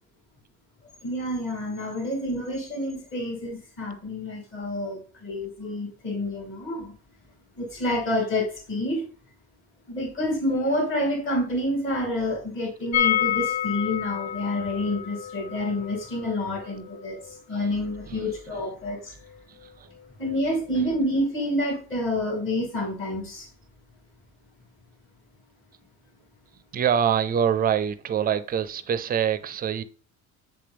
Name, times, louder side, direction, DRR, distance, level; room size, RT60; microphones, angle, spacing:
voice 1, 1.0-6.9 7.6-9.0 9.9-17.2 17.5-19.1 20.2-23.5, left 1 dB, 40° left, 2.6 m, -28 dB
sound 1, 12.9-18.7 19.0-19.1 19.3-19.4, left 10 dB, 60° left, 0.9 m, -29 dB
voice 2, 18.0-18.7 19.5-19.9 20.7-20.9 26.7-29.8, right 8 dB, 30° right, 0.4 m, -26 dB
7.9 x 6.8 x 3.4 m
cardioid pair, 175°, 31 cm